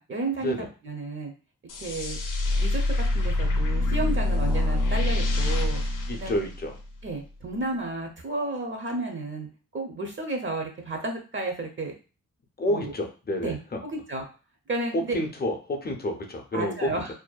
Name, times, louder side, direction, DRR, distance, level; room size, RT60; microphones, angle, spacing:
voice 1, 0.0-1.3 1.8-2.2 2.6-5.8 6.1-6.4 7.0-9.5 9.7-11.9 12.7-12.9 13.4-14.3 14.7-15.2 16.5-17.1, right 2 dB, 40° right, 2 dB, 0.6 m, -32 dB
sound 1, 1.7-7.0, left 2 dB, 75° left, 0.5 m, -25 dB
voice 2, 6.1-6.8 12.6-13.8 14.9-17.0, left 1 dB, 30° left, 3 dB, 0.5 m, -29 dB
2.6 x 2.1 x 2.3 m, 0.34 s
cardioid pair, 70°, 32 cm